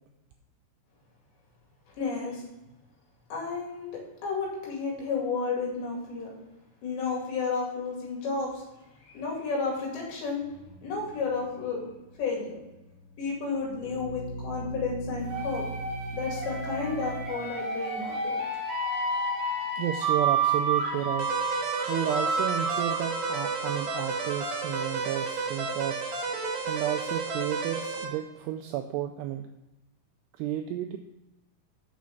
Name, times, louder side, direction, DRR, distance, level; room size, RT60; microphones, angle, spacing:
voice 1, 2.0-2.4 3.3-6.3 6.8-8.6 9.0-10.4 10.8-11.8 12.2-12.6 13.2-15.6 16.1-18.4, left 4 dB, 70° left, -2 dB, 4.5 m, -32 dB
sound 1, 10.4-17.3, right 2 dB, 55° left, 3.6 m, -41 dB
sound 2, 15.2-24.9, right 3 dB, 30° right, 3.0 m, -31 dB
voice 2, 19.8-21.3 21.9-26.1 26.7-29.5 30.4-31.0, right 12 dB, 90° right, 6 dB, 2.4 m, -32 dB
sound 3, 21.2-28.1, right 4 dB, 70° right, 1.7 m, -32 dB
7.2 x 6.2 x 5.8 m, 0.98 s
omnidirectional pair, 5.3 m